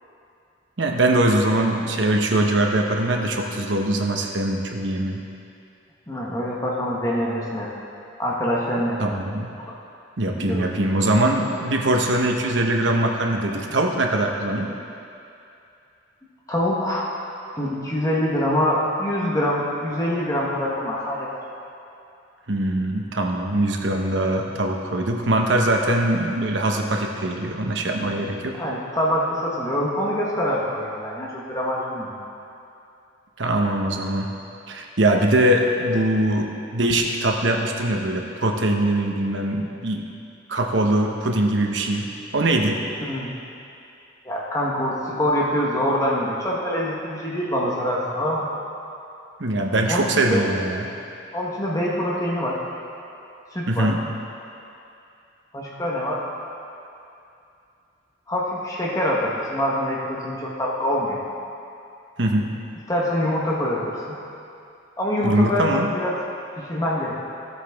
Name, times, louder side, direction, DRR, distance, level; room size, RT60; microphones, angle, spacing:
voice 1, 0.8-5.2 9.0-9.5 10.2-14.7 22.5-28.6 33.4-34.3 34.7-40.0 40.5-42.8 49.4-50.9 53.7-54.0 62.2-62.5 65.2-65.9, right 1 dB, 70° right, 2 dB, 1.0 m, -22 dB
voice 2, 6.1-7.7 8.2-9.0 10.3-10.7 16.5-17.1 17.6-21.4 28.6-32.1 43.0-43.3 44.2-48.5 49.9-50.4 51.3-52.6 53.5-53.9 55.5-56.2 58.3-61.2 62.9-64.2 65.0-66.1 66.6-67.1, equal, 20° left, -4 dB, 1.1 m, -25 dB
14.5 x 8.2 x 3.5 m, 2.7 s
head